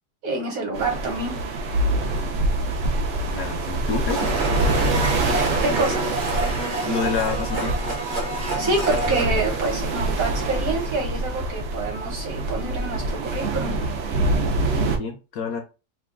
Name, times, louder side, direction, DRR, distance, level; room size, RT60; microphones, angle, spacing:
voice 1, 0.2-1.3 5.6-6.1 8.6-13.8, right 2 dB, 60° right, 1.1 m, -27 dB
sound 1, 0.7-15.0, right 2 dB, 80° right, 0.6 m, -25 dB
voice 2, 3.3-4.3 6.8-7.7 15.0-15.6, left 5 dB, 70° left, 0.9 m, -28 dB
Domestic sounds home sounds, 4.1-10.7, right 2 dB, 40° right, 0.8 m, -29 dB
2.9 x 2.2 x 3.5 m
omnidirectional pair, 1.9 m